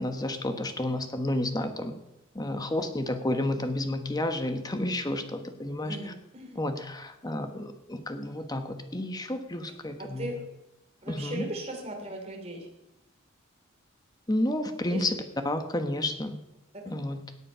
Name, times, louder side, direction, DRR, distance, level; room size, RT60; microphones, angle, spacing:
voice 1, 0.0-1.9 2.3-6.0 6.5-10.3 11.1-11.5 14.3-15.1 15.4-16.3 16.8-17.2, left 1 dB, 20° left, 7 dB, 1.2 m, -31 dB
voice 2, 5.8-6.6 10.0-10.4 11.0-12.7 14.8-15.0 16.8-16.9, right 1 dB, 30° right, 2 dB, 3.1 m, -38 dB
17.5 x 8.6 x 5.6 m, 0.91 s
head